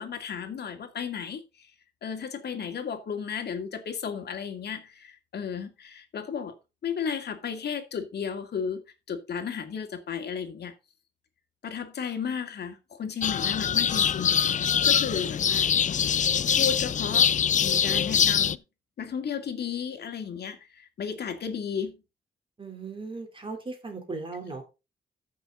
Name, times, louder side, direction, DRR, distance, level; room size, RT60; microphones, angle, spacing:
voice 1, 0.0-1.7 2.0-6.5 6.8-8.8 9.1-10.7 11.6-15.7 16.6-17.3 17.6-18.6 19.0-22.0, left 7 dB, 65° left, 2.3 m, -34 dB
sound 1, 13.2-18.6, left 8 dB, 45° left, 0.5 m, -23 dB
voice 2, 22.6-24.6, right 3 dB, 30° right, 3.3 m, -37 dB
14.5 x 6.2 x 3.8 m
wide cardioid pair, 130°, 18 cm